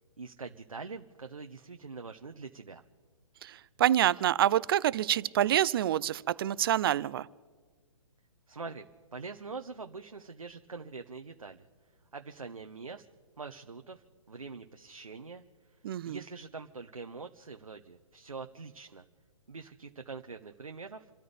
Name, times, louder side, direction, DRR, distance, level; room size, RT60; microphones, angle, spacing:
voice 1, 0.2-2.8 8.5-8.8 9.1-11.7 12.1-13.1 13.4-15.4 16.0-19.0 19.5-21.1, right 4 dB, 90° right, 5 dB, 1.0 m, -44 dB
voice 2, 3.4-7.3 15.8-16.2, right 11 dB, 45° right, 20 dB, 0.5 m, -27 dB
28.5 x 13.5 x 3.5 m, 1.5 s
figure-of-eight pair, 130°, 17 cm